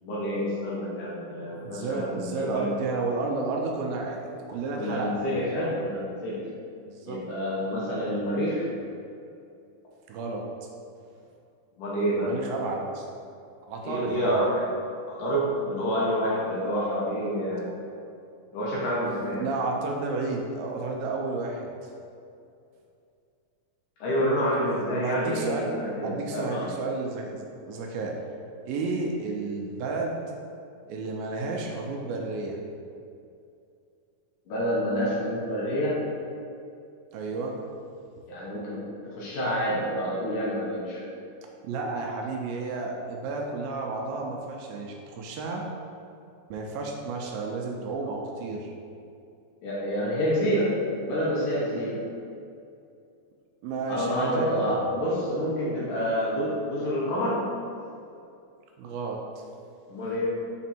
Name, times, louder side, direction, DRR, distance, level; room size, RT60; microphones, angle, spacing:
voice 1, 0.0-2.7 4.8-6.4 7.1-8.7 11.8-12.3 13.8-14.7 15.1-17.7 18.5-19.4 24.0-26.7 34.5-36.0 38.3-41.1 49.6-50.8 51.0-52.0 53.9-57.5 59.9-60.3, equal, 65° left, -6 dB, 2.3 m, -28 dB
voice 2, 1.6-4.2 4.5-5.2 6.8-7.2 10.1-10.4 12.1-13.1 13.7-14.4 19.4-21.7 25.0-25.7 26.0-28.2 28.7-30.2 30.9-32.6 37.1-37.6 41.6-45.6 46.5-48.7 53.6-54.9 58.8-59.2, right 3 dB, 80° right, 0 dB, 2.3 m, -31 dB
6.1 x 4.3 x 4.3 m, 2.5 s
omnidirectional pair, 4.4 m